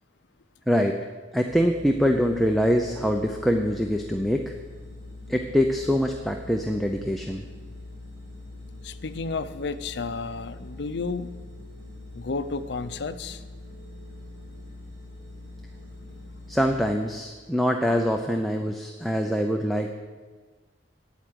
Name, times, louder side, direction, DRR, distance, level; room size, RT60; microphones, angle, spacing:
voice 1, 0.7-1.0 1.3-4.5 5.3-7.5 16.5-20.0, equal, ahead, 2 dB, 0.5 m, -24 dB
sound 1, 1.5-16.9, left 2 dB, 75° right, 3.2 m, -43 dB
voice 2, 8.8-11.3 12.1-13.4, left 4 dB, 60° left, 11 dB, 0.6 m, -32 dB
8.8 x 8.3 x 9.4 m, 1.4 s
head